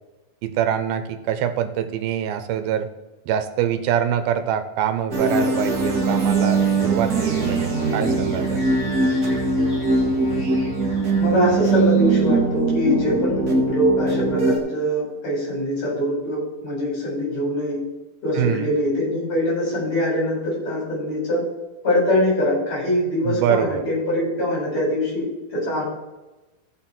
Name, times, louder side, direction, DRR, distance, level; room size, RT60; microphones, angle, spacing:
voice 1, 0.4-2.9 3.3-8.7 18.4-18.7 23.2-23.8, right 9 dB, 75° right, 9 dB, 2.6 m, -24 dB
sound 1, 5.1-14.6, right 3 dB, 50° right, 1.1 m, -21 dB
sound 2, 5.8-12.4, right 1 dB, 5° left, 4.1 m, -37 dB
voice 2, 11.2-17.8 18.2-21.4 21.8-25.8, left 1 dB, 45° left, -3 dB, 5.7 m, -23 dB
14.5 x 6.6 x 4.4 m, 1.1 s
omnidirectional pair, 4.3 m